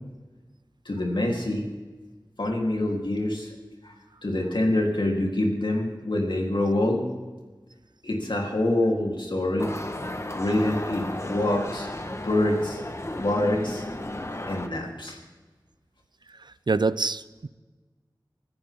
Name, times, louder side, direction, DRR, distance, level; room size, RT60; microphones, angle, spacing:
voice 1, 0.9-1.6 2.4-3.5 3.8-4.0 4.2-7.0 8.0-9.7 10.3-11.9 12.2-12.8 13.2-13.8 14.5-15.2, left 1 dB, 75° left, 0 dB, 3.6 m, -25 dB
sound 1, 9.6-14.7, left 1 dB, 35° left, 1.3 m, -34 dB
voice 2, 16.4-17.5, right 3 dB, 65° right, 16 dB, 0.6 m, -26 dB
25.0 x 14.5 x 3.7 m, 1.3 s
wide cardioid pair, 55°, 8 cm